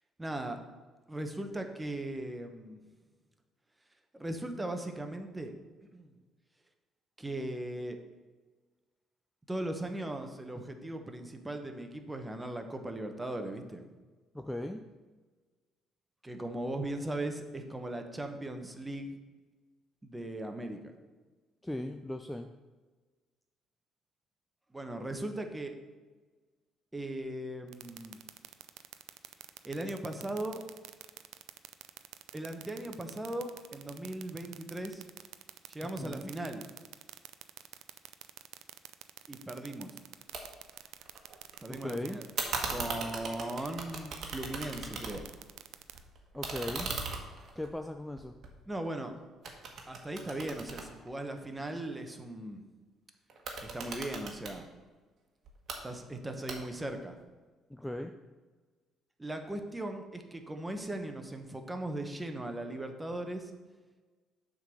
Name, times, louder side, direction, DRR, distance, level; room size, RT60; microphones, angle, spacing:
voice 1, 0.2-0.6 1.1-2.8 4.1-5.5 5.9-6.1 7.2-8.0 9.5-13.8 16.2-19.2 20.0-20.8 24.7-25.8 26.9-28.2 29.6-30.6 32.3-35.0 35.7-36.7 39.3-40.0 41.6-42.3 42.7-45.3 48.7-49.1 49.9-52.6 53.6-54.6 55.8-57.2 59.2-63.5, right 1 dB, 15° right, 6 dB, 1.1 m, -38 dB
voice 2, 14.3-14.8 21.6-22.5 36.0-36.3 41.7-42.2 46.3-46.9 47.6-48.3 57.7-58.1, left 1 dB, 10° left, 6 dB, 0.4 m, -38 dB
sound 1, 27.7-46.0, right 15 dB, 80° right, 0.4 m, -46 dB
sound 2, 40.3-40.4 40.7-41.6 42.4-45.4 45.8-49.0 49.4-51.7 53.3-54.6 55.4-55.8 56.5-56.9, right 4 dB, 60° right, 1.3 m, -39 dB
7.1 x 3.9 x 6.2 m, 1.3 s
supercardioid pair, 65°, 0 cm